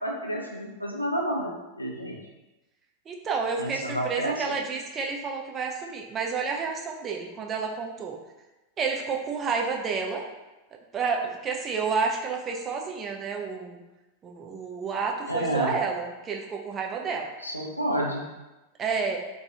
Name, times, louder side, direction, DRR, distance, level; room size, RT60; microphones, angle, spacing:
voice 1, 0.0-2.2 3.6-4.5 15.3-15.7 17.4-18.2, right 1 dB, 90° left, -2 dB, 0.4 m, -29 dB
voice 2, 3.1-8.2 8.8-10.2 10.9-13.8 14.2-17.3 18.8-19.2, right 5 dB, 25° right, 1 dB, 0.3 m, -30 dB
2.3 x 2.2 x 2.8 m, 1.0 s
figure-of-eight pair, 90°, 0 cm